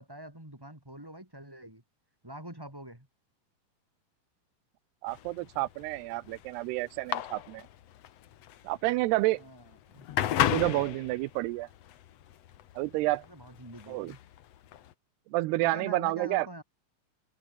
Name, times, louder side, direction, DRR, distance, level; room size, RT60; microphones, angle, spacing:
voice 1, 0.0-1.8 2.2-3.1 9.4-10.1 13.3-14.2 15.6-16.6, right 1 dB, 5° right, 3.3 m, -45 dB
voice 2, 5.0-7.7 8.6-9.4 10.4-11.7 12.8-13.2 13.9-14.1 15.3-16.5, right 19 dB, 85° right, 2.9 m, -29 dB
sound 1, 5.1-14.9, left 12 dB, 75° left, 1.5 m, -34 dB
omnidirectional pair, 4.6 m